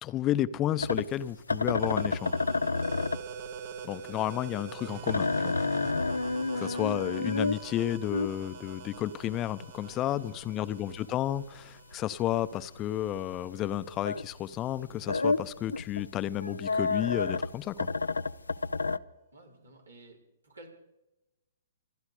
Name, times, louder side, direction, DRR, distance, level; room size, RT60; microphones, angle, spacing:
voice 1, 0.0-2.4 3.8-5.6 6.6-17.9, left 12 dB, 25° left, 0.8 m, -32 dB
sound 1, 0.8-14.4 14.7-19.0, left 3 dB, 85° left, 0.6 m, -31 dB
sound 2, 1.8-13.2, right 8 dB, 45° right, 1.1 m, -45 dB
voice 2, 6.4-6.8 9.8-11.1 19.3-20.7, right 2 dB, 85° right, 5.0 m, -53 dB
27.5 x 10.5 x 5.0 m
figure-of-eight pair, 120°, 0 cm